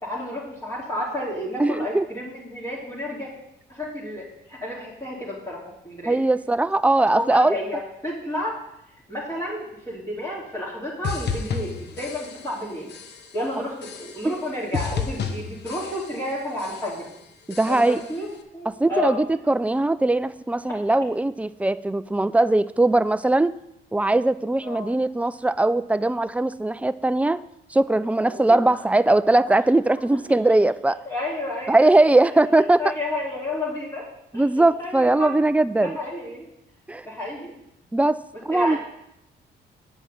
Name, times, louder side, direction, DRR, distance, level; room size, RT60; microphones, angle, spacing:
voice 1, 0.0-3.3 3.7-5.6 5.8-6.2 7.1-8.6 9.1-12.9 13.3-17.1 17.7-18.3 18.5-19.2 24.6-24.9 28.2-28.9 31.1-31.9 32.8-34.1 34.3-35.3 35.8-36.5 37.0-37.6 38.5-38.8, left 1 dB, 15° left, -6 dB, 2.7 m, -31 dB
voice 2, 1.6-2.1 6.1-7.6 14.2-14.3 17.5-18.0 18.8-23.5 23.9-27.4 27.7-31.0 31.7-32.8 34.3-36.0 36.9-37.1 37.9-38.8, right 2 dB, 5° right, 14 dB, 0.3 m, -20 dB
sound 1, 11.0-12.6 12.9-13.4 13.8-14.5 14.7-16.3 16.6-17.1 17.5-18.1, left 6 dB, 55° left, 0.9 m, -32 dB
8.1 x 5.5 x 6.3 m, 0.81 s
cardioid pair, 90°, 20 cm